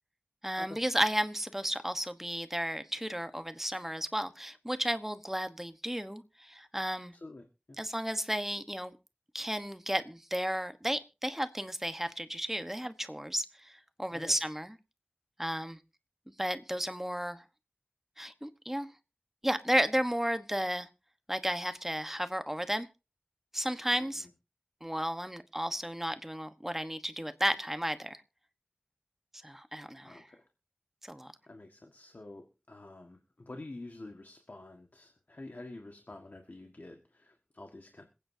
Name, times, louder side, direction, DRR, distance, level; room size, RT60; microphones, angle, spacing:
voice 1, 0.4-7.1 7.8-8.9 9.3-14.7 15.4-15.8 16.4-17.4 18.2-18.9 19.4-20.9 21.3-22.9 23.5-24.3 24.8-28.2 29.4-30.3 31.0-31.3, equal, 10° right, 1.2 m, -33 dB
voice 2, 7.1-7.8 14.1-14.3 23.9-24.3 30.0-30.4 31.5-38.1, left 2 dB, 65° left, 1.7 m, -48 dB
26.5 x 9.2 x 2.8 m
wide cardioid pair, 45°, 3 cm